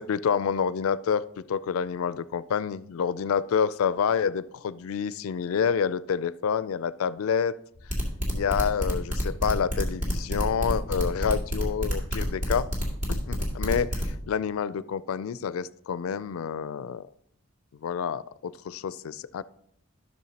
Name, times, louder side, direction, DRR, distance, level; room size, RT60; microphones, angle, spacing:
voice 1, 0.0-7.6 8.3-12.7 13.1-17.1 17.8-19.4, left 7 dB, 85° left, 17 dB, 0.4 m, -28 dB
sound 1, 7.8-14.1, equal, 40° right, 2.1 m, -27 dB
12.5 x 6.3 x 2.8 m, 0.72 s
head